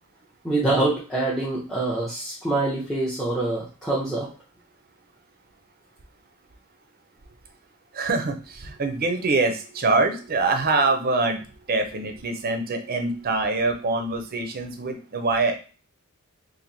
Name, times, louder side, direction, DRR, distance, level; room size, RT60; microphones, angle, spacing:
voice 1, 0.4-4.3, right 2 dB, ahead, -5 dB, 0.7 m, -25 dB
voice 2, 7.9-15.6, right 3 dB, 45° right, 5 dB, 0.6 m, -24 dB
3.0 x 2.6 x 3.9 m, 0.37 s
head